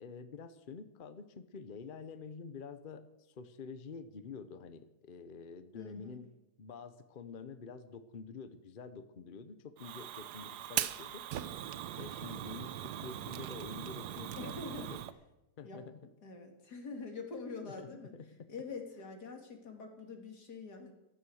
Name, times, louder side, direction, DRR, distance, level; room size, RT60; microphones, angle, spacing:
voice 1, 0.0-6.3 6.6-11.2 11.9-14.6 14.9-15.0 15.6-16.1 17.6-18.3, left 5 dB, 40° left, 11 dB, 1.0 m, -48 dB
voice 2, 5.7-6.2 14.4-14.9 15.6-15.9 16.2-18.1 18.5-20.9, left 4 dB, 90° left, 4 dB, 3.0 m, -45 dB
Fire, 9.8-15.1, right 11 dB, 90° right, 1.3 m, -40 dB
15.5 x 13.0 x 6.4 m, 0.94 s
omnidirectional pair, 1.7 m